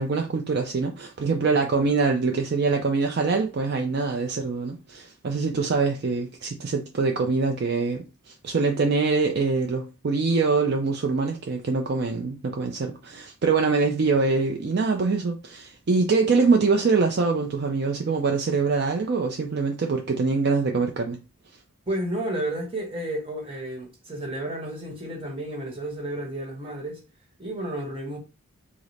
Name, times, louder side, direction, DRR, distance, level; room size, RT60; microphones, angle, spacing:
voice 1, 0.0-21.2, right 4 dB, 45° right, 0.4 m, -24 dB
voice 2, 21.9-27.0 27.4-28.2, right 1 dB, 25° right, 1.1 m, -31 dB
4.9 x 2.0 x 4.0 m
head